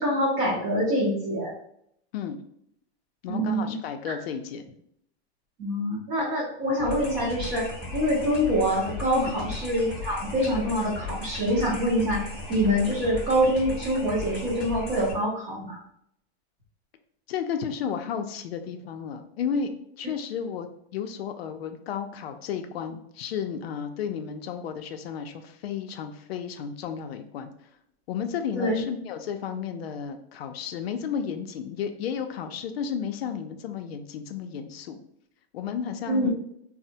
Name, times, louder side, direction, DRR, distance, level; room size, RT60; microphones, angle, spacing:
voice 1, 0.0-1.5 3.3-3.7 4.1-4.2 5.6-7.7 7.9-15.8 28.5-28.8 36.1-36.3, equal, 25° right, -2 dB, 0.7 m, -25 dB
voice 2, 3.2-4.6 9.2-9.4 17.3-19.7 20.0-27.5 28.1-35.0 35.5-36.3, left 7 dB, 65° left, 6 dB, 0.4 m, -33 dB
sound 1, 6.8-15.1, left 3 dB, ahead, 0.4 m, -36 dB
4.2 x 2.0 x 2.7 m, 0.71 s
supercardioid pair, 180°, 33 cm